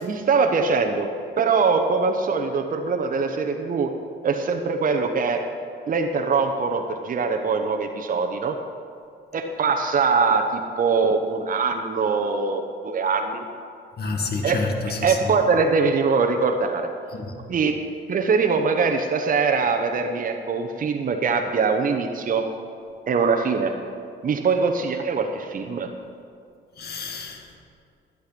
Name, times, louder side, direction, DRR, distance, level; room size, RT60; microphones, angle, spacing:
voice 1, 0.0-1.1 1.4-3.9 4.2-5.4 5.9-8.6 9.3-13.4 14.4-14.6 15.0-16.9 17.5-17.8 18.1-22.4 23.1-23.7 24.2-25.9, right 4 dB, 45° right, 4 dB, 0.9 m, -22 dB
voice 2, 14.0-15.2 17.1-17.3 26.8-27.6, left 3 dB, 55° left, 3 dB, 1.9 m, -29 dB
12.0 x 11.5 x 5.3 m, 2.4 s
cardioid pair, 90°, 20 cm